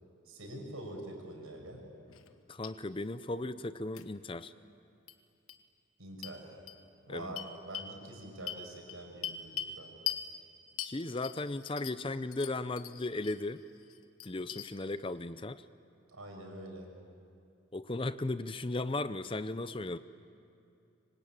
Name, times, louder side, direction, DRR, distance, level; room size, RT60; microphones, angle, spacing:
voice 1, 0.2-1.8 6.0-6.6 7.0-9.9 16.1-16.9, right 1 dB, 90° right, 1 dB, 6.4 m, -45 dB
sound 1, 2.1-2.3 2.6-2.7 3.9-4.0 5.1-5.2 5.5-5.6 6.2-6.3 6.7-6.8 7.4-7.9 8.5-9.8 10.1-10.2 10.8-12.1 12.3-13.4 13.8-14.7, left 9 dB, 85° left, 1.3 m, -40 dB
voice 2, 2.5-4.5 7.1-7.3 10.8-13.6 14.2-15.6 17.7-20.0, left 2 dB, 25° left, 13 dB, 0.6 m, -36 dB
26.0 x 25.0 x 8.9 m, 2.6 s
head